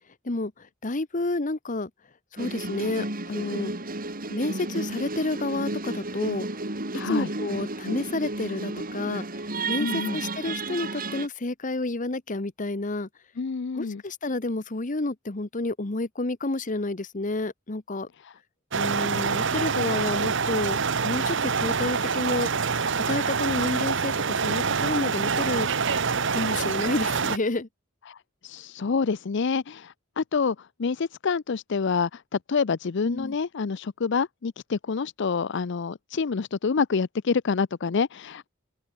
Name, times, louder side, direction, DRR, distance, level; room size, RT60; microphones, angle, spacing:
voice 1, 0.2-1.9 2.3-3.7 4.3-6.5 7.0-9.4 9.7-13.1 13.7-18.1 18.8-22.5 22.9-25.7 26.3-27.7 33.0-33.3, left 2 dB, 40° left, 1.1 m, -30 dB
sound 1, 2.4-11.3, right 2 dB, 45° right, 3.5 m, -32 dB
voice 2, 6.9-7.3 9.8-10.2 13.4-14.0 18.2-18.3 28.1-28.2 28.4-38.5, left 5 dB, 60° left, 0.5 m, -27 dB
sound 2, 18.7-27.4, right 5 dB, 65° right, 1.2 m, -26 dB
open air
head